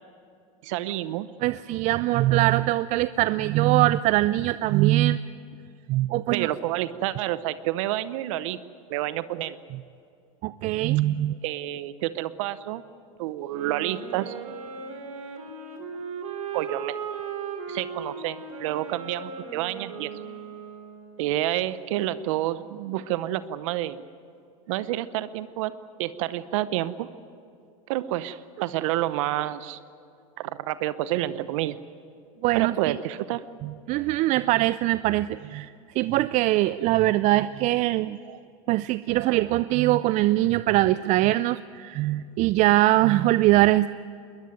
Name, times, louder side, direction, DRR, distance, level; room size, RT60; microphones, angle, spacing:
voice 1, 0.6-1.3 6.3-8.6 8.9-9.6 11.4-12.8 13.2-14.3 16.5-17.0 17.7-20.1 21.2-24.0 24.7-25.7 26.0-27.1 27.9-29.8 30.4-31.8 32.5-33.4, right 14 dB, 65° right, 14 dB, 0.8 m, -29 dB
voice 2, 1.4-5.2 5.9-6.5 10.4-11.4 32.4-33.0 33.6-38.4 38.7-43.9, right 16 dB, 45° right, 16 dB, 0.5 m, -22 dB
sound 1, 13.4-21.3, right 6 dB, 80° right, 3.8 m, -37 dB
21.5 x 20.0 x 9.4 m, 2.5 s
hypercardioid pair, 105°, 18 cm